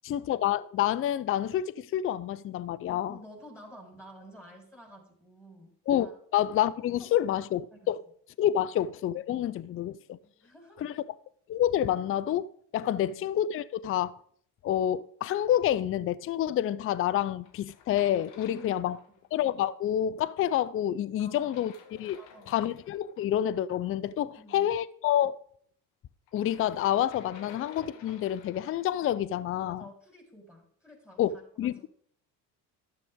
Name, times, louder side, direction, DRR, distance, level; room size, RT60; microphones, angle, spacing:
voice 1, 0.0-3.2 5.9-8.0 8.4-10.2 10.8-10.9 11.5-14.1 14.6-19.0 19.3-22.2 22.5-25.4 26.3-29.9 31.2-31.3 31.6-31.9, left 11 dB, 30° left, 0.5 m, -28 dB
voice 2, 3.1-5.7 6.0-6.2 7.0-7.4 7.7-7.9 8.5-8.6 10.2-10.9 18.4-19.0 21.2-21.7 22.2-22.8 24.3-24.7 29.6-31.9, equal, 5° left, 4.7 m, -51 dB
sound 1, 17.4-19.4 21.3-23.2 26.3-29.0, left 7 dB, 65° left, 1.4 m, -53 dB
12.5 x 7.6 x 3.6 m
hypercardioid pair, 60°, 48 cm